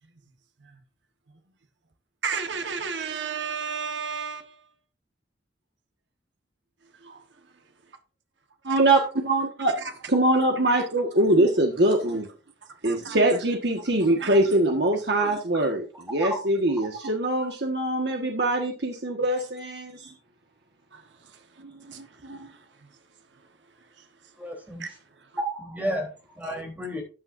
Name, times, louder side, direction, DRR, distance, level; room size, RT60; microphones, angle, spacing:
voice 1, 2.2-4.6 6.9-7.2 8.7-8.8 9.8-9.9 10.7-10.9 12.6-13.2 14.2-14.4 20.9-21.6 21.9-23.0 23.3-23.5 23.9-24.1 24.8-24.9 25.2-25.4 26.4-26.6, right 6 dB, 85° right, 1.3 m, -35 dB
voice 2, 8.6-9.7 10.1-12.3 12.8-15.8 16.1-20.1 21.6-22.5, right 1 dB, 65° right, 1.5 m, -23 dB
voice 3, 24.4-24.8 25.4-27.0, equal, 10° right, 3.6 m, -31 dB
14.0 x 9.0 x 2.6 m
head